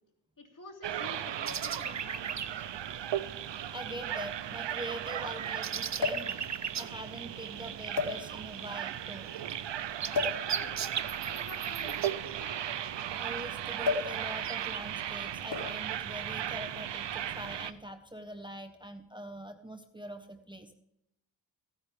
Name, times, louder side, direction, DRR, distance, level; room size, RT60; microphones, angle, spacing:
voice 1, 0.4-2.7 10.4-12.8, left 3 dB, 50° left, 1 dB, 3.3 m, -49 dB
sound 1, 0.8-17.7, right 10 dB, 80° right, 0.7 m, -37 dB
sound 2, 1.5-2.7 4.8-6.9 9.1-9.2 9.5-12.8 13.4-13.6 14.2-14.8, right 7 dB, 40° right, 0.6 m, -37 dB
sound 3, 2.2-2.3 3.4-3.5 3.8-3.9 6.0-6.4 7.2-7.4 7.9-8.6 10.1-10.5 11.6-13.2 13.8-14.2 14.5-14.7 15.5-15.9 16.8-17.1, left 5 dB, 65° left, 2.6 m, -33 dB
voice 2, 3.7-6.5 6.8-9.3 13.2-20.7, right 1 dB, 10° right, 6 dB, 1.2 m, -43 dB
16.0 x 9.2 x 3.5 m, 0.79 s
cardioid pair, 60°, 42 cm